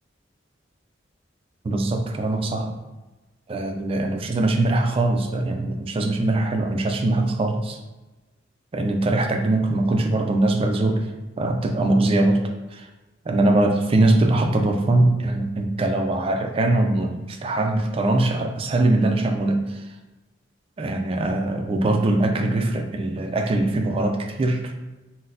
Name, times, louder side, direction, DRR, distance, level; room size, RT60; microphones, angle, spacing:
voice 1, 1.6-2.7 3.5-7.8 8.7-11.1 11.4-12.4 12.7-12.9 13.3-19.9 20.8-24.7, right 2 dB, 30° right, 4 dB, 0.3 m, -22 dB
4.0 x 2.0 x 2.6 m, 1.1 s
head